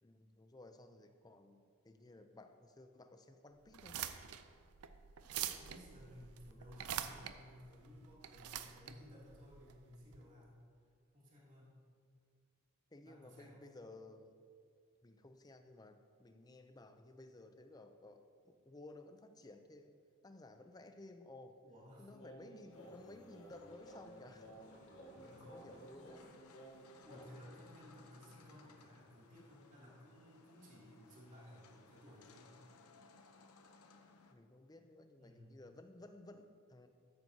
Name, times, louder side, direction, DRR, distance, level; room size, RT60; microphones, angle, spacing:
voice 1, 0.0-4.0 12.9-14.4 15.0-19.9 20.2-21.6 22.0-24.5 25.5-26.2 34.3-36.9, left 2 dB, 15° left, 8 dB, 0.4 m, -56 dB
sound 1, 3.7-10.2, right 10 dB, 85° right, 0.5 m, -45 dB
voice 2, 5.2-10.6 11.1-11.8 13.0-13.7 21.6-22.1 25.1-25.6 27.0-32.6 35.2-35.5, equal, 35° right, -6 dB, 2.6 m, -58 dB
sound 2, 22.1-27.3, right 1 dB, 60° left, 1.9 m, -56 dB
sound 3, 22.7-34.3, left 4 dB, 80° left, 0.7 m, -64 dB
13.0 x 9.2 x 2.8 m, 2.2 s
head